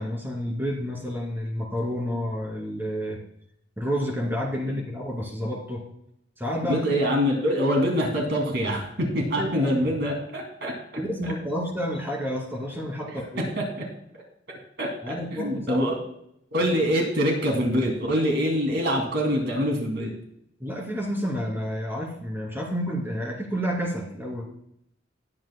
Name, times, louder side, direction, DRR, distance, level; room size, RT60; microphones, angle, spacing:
voice 1, 0.0-3.2 3.8-5.8 6.4-6.8 9.4-9.8 10.9-13.5 15.0-16.0 20.6-24.5, equal, 10° right, -1 dB, 2.6 m, -30 dB
voice 2, 6.7-10.7 11.2-11.3 13.6-13.8 14.8-16.0 16.5-20.1, equal, 65° right, 1 dB, 2.5 m, -25 dB
20.0 x 8.6 x 2.2 m, 0.75 s
head